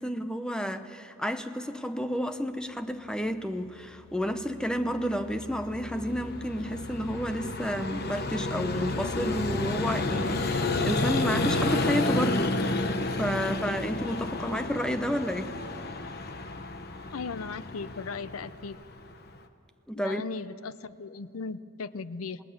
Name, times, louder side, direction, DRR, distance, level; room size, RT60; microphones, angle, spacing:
voice 1, 0.0-12.9 13.2-15.6 19.9-20.2, equal, 5° left, 9 dB, 0.7 m, -31 dB
Vehicle, 4.7-19.4, left 2 dB, 50° left, 1.1 m, -31 dB
voice 2, 17.1-18.8 19.9-22.4, left 4 dB, 90° left, 15 dB, 0.6 m, -37 dB
27.5 x 19.0 x 7.2 m, 2.6 s
head